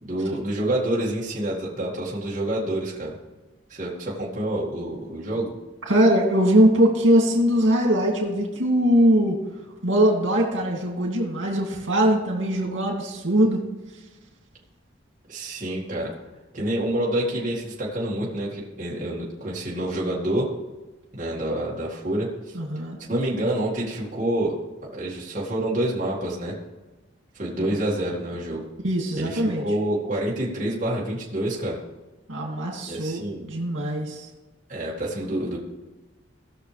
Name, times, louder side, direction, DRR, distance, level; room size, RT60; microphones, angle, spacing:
voice 1, 0.0-3.1 3.7-5.5 15.3-16.1 16.5-20.5 21.1-22.6 23.1-24.5 24.9-26.5 27.3-28.6 29.2-31.8 32.9-33.5 34.7-35.6, right 1 dB, 40° right, -5 dB, 2.1 m, -27 dB
voice 2, 5.9-9.4 9.8-13.6 22.6-23.0 28.8-29.6 32.3-34.3, equal, 80° right, -1 dB, 2.4 m, -21 dB
18.0 x 6.4 x 3.3 m, 1.2 s
head